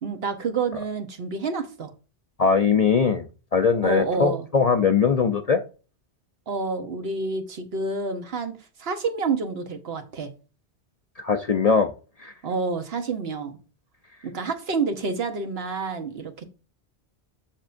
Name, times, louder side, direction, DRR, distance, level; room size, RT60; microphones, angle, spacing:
voice 1, 0.0-1.9 3.8-4.5 6.5-8.5 8.8-10.3 12.4-13.6 14.2-16.5, right 4 dB, 65° right, 1.2 m, -28 dB
voice 2, 2.4-3.2 3.5-5.6 11.2-11.9 12.2-12.3, left 5 dB, 45° left, 0.5 m, -21 dB
7.2 x 6.7 x 2.5 m
omnidirectional pair, 1.1 m